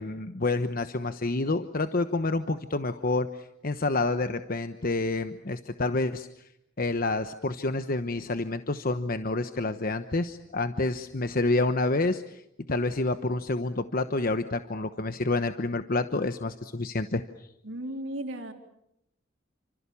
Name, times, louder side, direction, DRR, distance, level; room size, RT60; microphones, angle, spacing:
voice 1, 0.0-6.3 6.8-12.4 12.7-17.2, left 2 dB, 50° left, 9 dB, 1.1 m, -28 dB
voice 2, 17.6-18.5, right 1 dB, 70° right, 5 dB, 3.6 m, -35 dB
29.5 x 26.0 x 7.1 m, 0.79 s
head